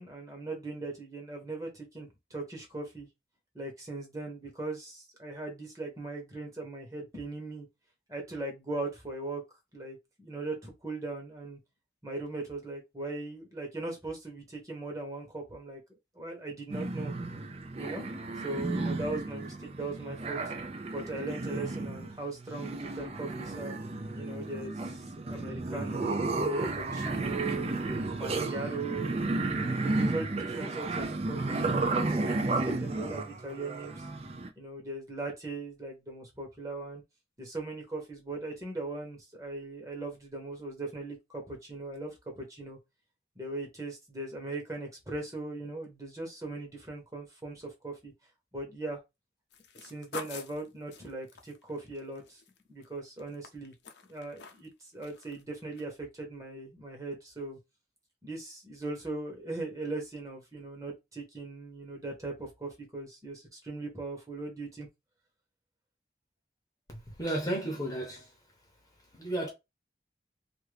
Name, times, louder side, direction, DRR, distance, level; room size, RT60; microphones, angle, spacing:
voice 1, 0.0-3.1 3.5-7.7 8.1-9.4 9.7-11.6 12.0-15.8 16.1-17.1 17.8-18.1 18.4-20.4 20.9-23.7 24.1-26.2 26.5-27.8 28.2-34.0 34.6-37.0 37.4-42.8 43.4-48.1 48.5-49.0 49.8-52.4 52.7-53.7 54.1-57.6 58.2-64.9, right 2 dB, 20° right, 1.0 m, -39 dB
sound 1, 16.7-34.5, right 2 dB, 35° right, 0.4 m, -33 dB
sound 2, 49.5-52.9 53.2-54.7 55.0-55.4 55.8-55.9, left 5 dB, 80° left, 0.6 m, -46 dB
voice 2, 66.9-68.3 69.1-69.5, right 1 dB, 20° left, 0.8 m, -33 dB
2.7 x 2.6 x 3.2 m
head